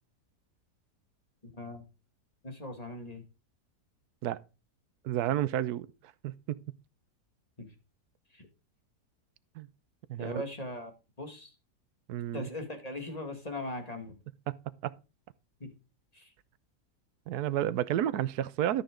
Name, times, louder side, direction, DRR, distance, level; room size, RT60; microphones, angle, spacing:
voice 1, 1.5-1.8 2.4-3.2 7.6-7.7 8.3-8.5 10.2-10.9 11.2-11.5 12.3-14.2 15.6-15.7 16.1-16.3, left 1 dB, 25° left, 2.2 m, -39 dB
voice 2, 5.0-5.9 6.2-6.6 9.6-9.7 10.1-10.3 12.1-12.5 14.5-14.6 14.8-14.9 17.3-18.8, right 12 dB, 75° right, 1.2 m, -31 dB
13.0 x 6.7 x 3.7 m
omnidirectional pair, 1.8 m